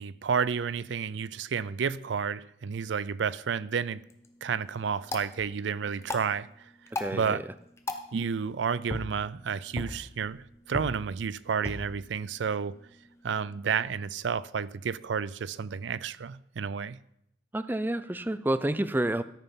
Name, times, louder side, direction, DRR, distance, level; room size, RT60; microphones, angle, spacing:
voice 1, 0.0-4.0 4.4-6.5 7.1-7.4 8.1-12.7 13.2-17.0, right 6 dB, 70° right, 0.4 m, -31 dB
sound 1, 3.9-14.0, left 1 dB, 15° left, 0.8 m, -41 dB
voice 2, 6.9-7.4 17.5-19.2, right 1 dB, 10° right, 0.4 m, -29 dB
13.5 x 5.6 x 5.4 m
head